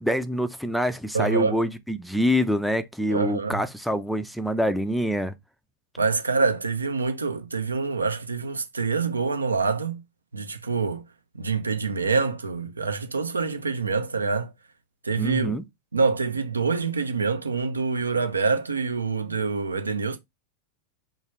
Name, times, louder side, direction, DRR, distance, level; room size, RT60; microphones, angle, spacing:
voice 1, 0.0-5.3 15.2-15.6, equal, ahead, 0.4 m, -25 dB
voice 2, 1.1-1.6 3.1-3.6 6.0-10.0 10.3-11.1 11.3-14.5 15.0-15.6 15.9-20.2, right 4 dB, 75° right, 0.5 m, -26 dB
3.3 x 2.4 x 3.1 m
figure-of-eight pair, 90°, 0 cm